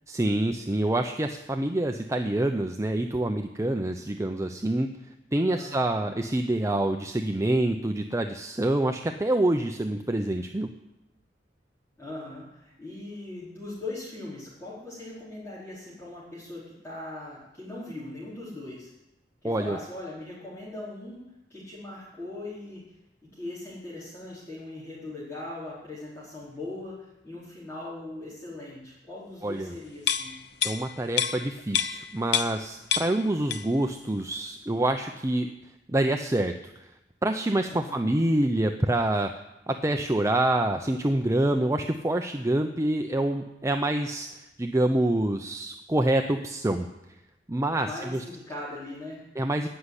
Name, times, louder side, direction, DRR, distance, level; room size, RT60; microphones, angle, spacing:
voice 1, 0.1-4.9 5.3-10.7 19.4-19.8 29.4-29.7 30.6-35.5 35.9-36.9 37.2-39.3 39.7-46.9 47.5-48.2 49.4-49.7, right 1 dB, 15° right, 5 dB, 0.6 m, -26 dB
voice 2, 5.4-5.9 12.0-18.9 19.4-21.2 21.5-23.0 23.2-30.4 37.7-38.1 47.7-49.2, left 2 dB, 15° left, -11 dB, 4.7 m, -40 dB
sound 1, 30.0-32.7 32.9-33.9 34.2-34.3, left 9 dB, 65° left, 0.9 m, -29 dB
18.0 x 6.6 x 9.9 m, 0.95 s
head